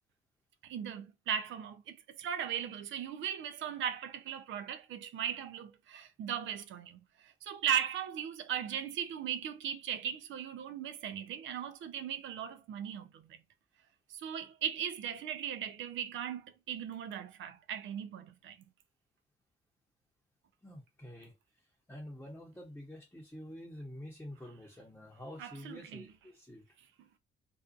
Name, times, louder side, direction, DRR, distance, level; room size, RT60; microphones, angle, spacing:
voice 1, 0.6-13.4 14.1-18.6 25.4-26.1 27.0-27.2, right 9 dB, 75° right, 0.5 m, -38 dB
voice 2, 20.6-21.3 21.9-26.6, left 1 dB, 10° left, 0.8 m, -48 dB
2.6 x 2.3 x 2.4 m
cardioid pair, 90°, 20 cm